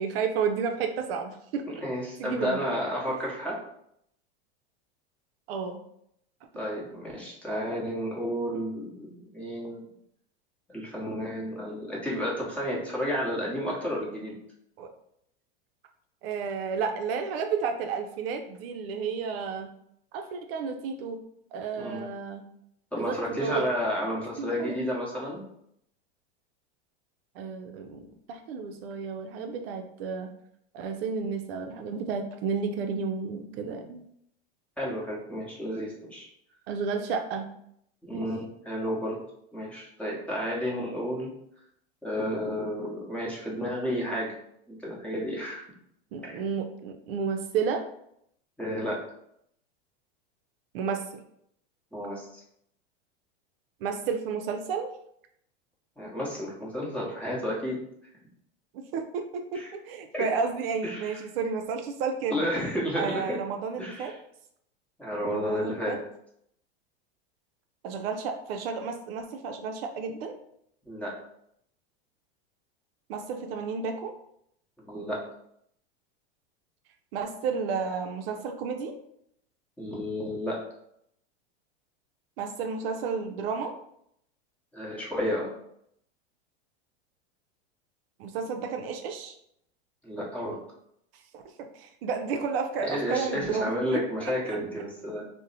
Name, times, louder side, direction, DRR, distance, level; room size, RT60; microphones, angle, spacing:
voice 1, 0.0-1.8 2.2-2.6 5.5-5.8 14.8-14.9 16.2-19.7 20.1-21.2 21.5-22.5 23.0-23.7 24.4-24.8 27.4-30.3 30.7-34.0 36.7-37.5 38.1-38.3 46.1-47.8 50.7-51.0 53.8-54.9 58.7-62.5 62.9-64.1 65.3-66.0 67.8-70.3 73.1-74.1 77.1-78.9 82.4-83.7 88.2-89.3 91.3-94.6, right 5 dB, 65° right, 5 dB, 0.5 m, -32 dB
voice 2, 1.8-3.6 6.5-9.8 10.7-14.4 21.8-22.1 22.9-25.4 33.5-33.7 34.8-36.3 38.0-39.2 39.5-41.3 42.0-44.4 44.7-45.6 46.2-46.4 48.6-49.0 51.9-52.3 56.0-57.8 59.5-59.7 60.1-60.3 60.8-61.2 62.3-63.4 63.8-64.2 65.0-66.0 70.9-71.1 74.8-75.2 79.8-80.6 84.7-85.5 90.0-90.6 92.8-95.2, equal, 5° left, -5 dB, 0.9 m, -31 dB
2.6 x 2.1 x 4.0 m, 0.73 s
hypercardioid pair, 115°, 31 cm